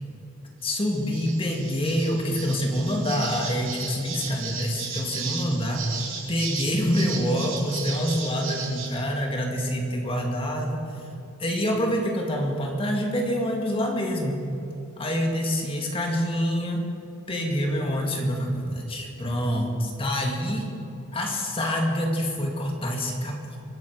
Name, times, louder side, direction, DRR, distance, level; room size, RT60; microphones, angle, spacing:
voice 1, 0.6-5.8 6.3-11.1 11.4-14.5 15.0-16.8 17.3-20.7 21.1-23.6, equal, 25° left, 1 dB, 2.1 m, -26 dB
sound 1, 0.6-8.9, right 5 dB, 80° right, 4.4 m, -35 dB
24.5 x 8.3 x 6.3 m, 2.9 s
head